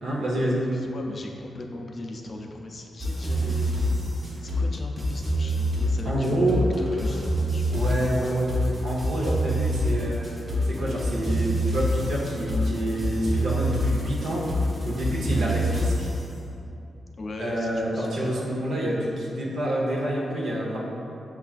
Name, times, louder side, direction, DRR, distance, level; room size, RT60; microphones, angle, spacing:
voice 1, 0.0-0.6 6.0-6.6 7.7-8.5 8.8-10.2 10.7-14.4 14.9-16.1 17.4-20.8, right 1 dB, 85° right, -5 dB, 0.7 m, -27 dB
voice 2, 0.7-4.1 4.4-8.1 15.3-15.5 17.2-18.5, left 2 dB, 45° left, 1 dB, 0.4 m, -38 dB
sound 1, 3.0-16.2, equal, 30° right, 0.7 m, -26 dB
5.7 x 2.4 x 2.4 m, 2.7 s
cardioid pair, 90°, 0 cm